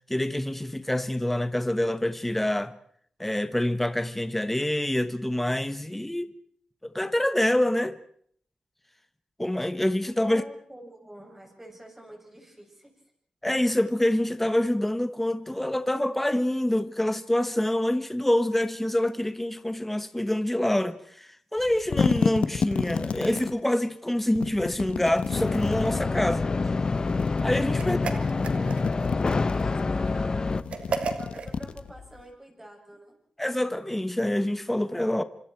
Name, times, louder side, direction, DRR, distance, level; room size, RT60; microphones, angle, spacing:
voice 1, 0.1-2.7 3.2-6.3 6.9-8.0 9.4-10.4 13.4-26.5 27.4-28.0 33.4-35.2, left 1 dB, 10° left, 1.1 m, -26 dB
voice 2, 10.2-12.9 27.8-30.5 31.2-33.2, right 1 dB, 15° right, 7.6 m, -46 dB
sound 1, 21.6-23.6 24.4-26.0 26.9-27.9 28.3-29.8 30.4-32.2, left 6 dB, 70° left, 1.3 m, -30 dB
sound 2, 25.3-30.6, left 4 dB, 40° left, 0.9 m, -26 dB
sound 3, 27.8-29.1 30.7-31.5, right 5 dB, 80° right, 2.4 m, -33 dB
27.0 x 26.0 x 4.6 m
wide cardioid pair, 100°, 2 cm